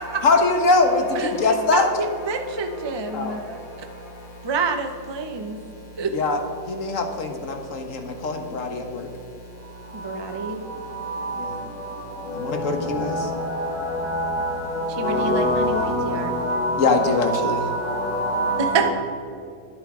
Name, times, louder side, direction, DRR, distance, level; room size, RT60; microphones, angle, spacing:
voice 1, 0.2-1.9 3.1-3.4 6.1-6.4 6.7-9.1 11.4-11.6 12.3-13.3 16.7-17.7, left 3 dB, 50° left, 5 dB, 1.4 m, -22 dB
voice 2, 1.7-3.6 4.4-5.6 6.0-6.1 9.9-10.6 14.9-16.3 18.6-18.9, right 4 dB, 40° right, 5 dB, 0.3 m, -27 dB
voice 3, 3.1-4.4 9.6-18.9, equal, 70° left, -3 dB, 2.7 m, -27 dB
11.5 x 10.0 x 4.9 m, 2.7 s
omnidirectional pair, 2.0 m